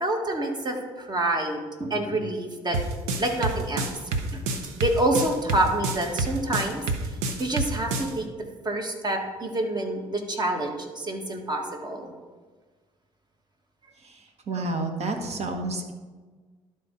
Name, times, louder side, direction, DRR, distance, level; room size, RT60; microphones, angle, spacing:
voice 1, 0.0-2.8 3.2-4.4 4.8-8.3 8.6-12.1 14.5-14.6, right 1 dB, 30° right, 3 dB, 1.6 m, -27 dB
sound 1, 2.7-8.1, right 3 dB, 85° right, 0.8 m, -28 dB
voice 2, 14.5-15.9, right 2 dB, 50° right, 4 dB, 1.3 m, -30 dB
12.0 x 4.2 x 3.8 m, 1.4 s
supercardioid pair, 60°, 14 cm